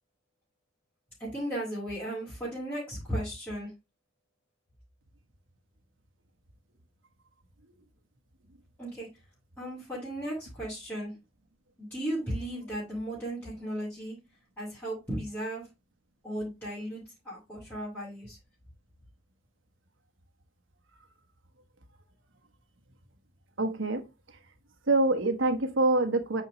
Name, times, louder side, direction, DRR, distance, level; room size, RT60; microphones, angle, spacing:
voice 1, 1.2-3.7 8.8-9.1 9.6-11.1 11.8-14.2 14.6-15.7 16.2-18.4, right 1 dB, 10° left, 2.6 m, -35 dB
voice 2, 23.6-24.0 24.9-26.4, right 2 dB, 70° right, 1.2 m, -25 dB
8.7 x 4.5 x 3.1 m
head